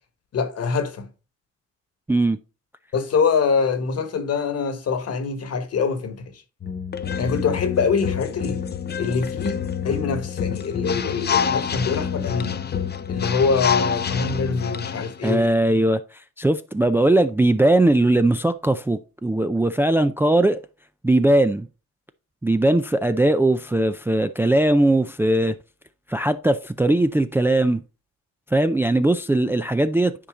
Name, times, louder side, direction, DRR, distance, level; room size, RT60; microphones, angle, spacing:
voice 1, 0.3-1.1 2.9-6.3 7.2-8.6 9.0-12.7 13.1-15.5, left 5 dB, 55° left, 1.4 m, -24 dB
sound 1, 6.6-15.4, left 7 dB, 35° left, 0.7 m, -27 dB
voice 2, 15.2-20.6 21.0-21.7 22.4-25.5 26.1-27.8 28.5-30.1, right 1 dB, 10° right, 0.4 m, -19 dB
10.0 x 4.2 x 3.7 m
cardioid pair, 90°, 30 cm